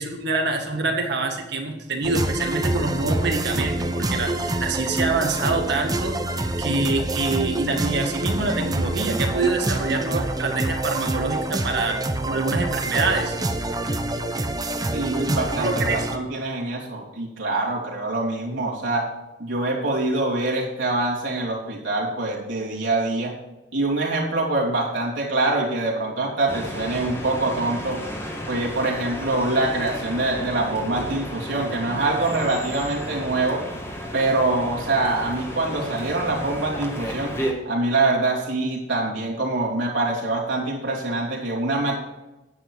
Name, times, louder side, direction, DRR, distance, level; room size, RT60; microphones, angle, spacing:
voice 1, 0.0-13.4 15.6-16.0, right 3 dB, 65° right, 3 dB, 1.8 m, -26 dB
sound 1, 2.0-16.2, right 1 dB, 20° right, 0.8 m, -26 dB
voice 2, 14.9-19.1 19.4-23.3 23.7-28.0 28.5-33.7 34.1-37.3 37.6-42.0, right 2 dB, 80° right, -4 dB, 3.0 m, -24 dB
sound 2, 26.5-37.5, equal, 15° left, 1.6 m, -33 dB
10.0 x 9.1 x 4.7 m, 1.0 s
head